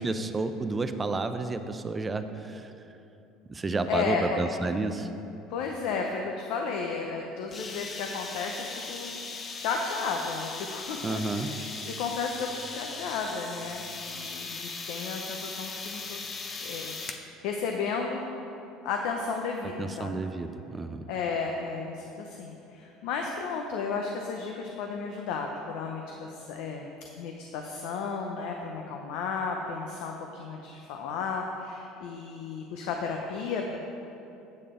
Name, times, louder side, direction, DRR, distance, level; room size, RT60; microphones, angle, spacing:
voice 1, 0.0-2.7 3.5-5.1 11.0-11.5 19.6-21.1, right 3 dB, 20° right, 9 dB, 0.4 m, -31 dB
voice 2, 3.9-4.4 5.5-9.3 9.6-16.3 16.6-16.9 17.4-18.3 18.8-20.1 21.1-26.9 27.2-33.8, left 5 dB, 75° left, 2 dB, 0.6 m, -33 dB
sound 1, 7.5-17.3, left 4 dB, 35° left, 0.6 m, -39 dB
8.5 x 6.7 x 3.7 m, 2.9 s
supercardioid pair, 110°, 0 cm